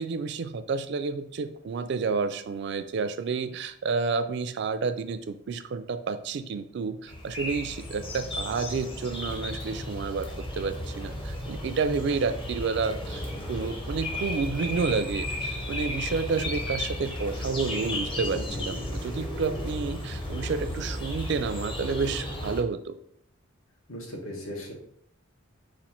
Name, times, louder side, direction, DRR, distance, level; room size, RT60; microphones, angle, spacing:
voice 1, 0.0-10.3 10.5-13.2 13.5-22.9, right 4 dB, 55° right, 10 dB, 0.3 m, -30 dB
sound 1, 7.1-22.6, left 1 dB, 25° left, 0.6 m, -34 dB
voice 2, 18.3-18.8 23.9-24.7, left 1 dB, 90° left, -1 dB, 1.2 m, -38 dB
4.2 x 2.5 x 4.2 m, 0.69 s
head